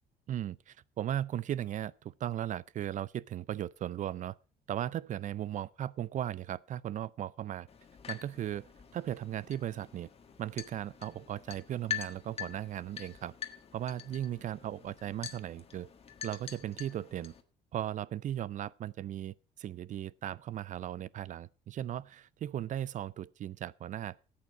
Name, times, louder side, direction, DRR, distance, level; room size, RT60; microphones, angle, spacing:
voice 1, 0.3-4.4 4.7-7.7 8.1-10.1 10.4-13.3 13.7-15.9 16.2-17.3 17.7-24.2, right 11 dB, 50° right, 0.5 m, -37 dB
sound 1, 7.7-17.4, left 10 dB, 35° left, 1.6 m, -45 dB
13.5 x 8.6 x 4.9 m
cardioid pair, 110°, 17 cm